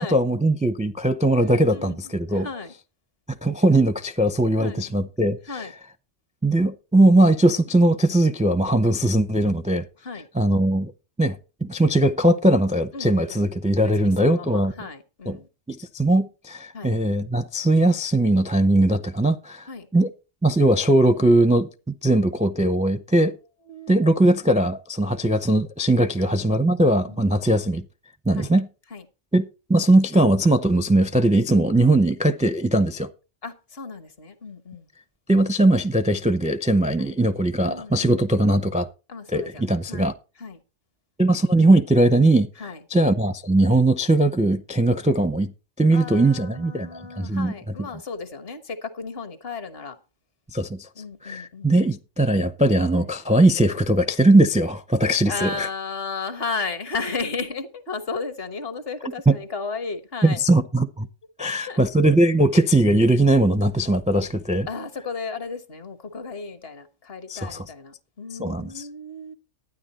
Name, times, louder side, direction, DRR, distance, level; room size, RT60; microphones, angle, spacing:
voice 1, 0.0-2.5 3.4-5.4 6.4-9.8 10.3-10.9 11.2-14.7 15.3-15.4 15.7-20.1 20.4-23.4 23.9-27.8 28.3-28.7 29.3-33.1 35.3-38.9 39.3-40.1 41.2-42.5 42.9-45.5 45.8-47.5 50.5-50.9 51.2-55.7 59.3-59.4 60.2-61.1 61.4-64.7 67.3-67.7 68.4-68.9, right 1 dB, 10° right, 0.4 m, -20 dB
voice 2, 1.4-2.0 2.3-2.7 4.6-4.8 5.5-5.7 10.0-10.3 12.9-13.4 13.8-15.5 16.7-16.9 19.7-19.9 23.7-24.3 26.2-26.3 27.1-27.2 28.3-28.5 28.9-29.0 33.4-34.9 37.0-37.2 37.6-38.2 39.1-40.1 40.4-40.6 42.6-42.8 45.9-50.0 50.9-51.9 52.9-53.1 55.2-60.4 61.4-61.8 64.7-69.3, left 4 dB, 55° left, 1.4 m, -34 dB
12.5 x 9.6 x 4.1 m
omnidirectional pair, 1.2 m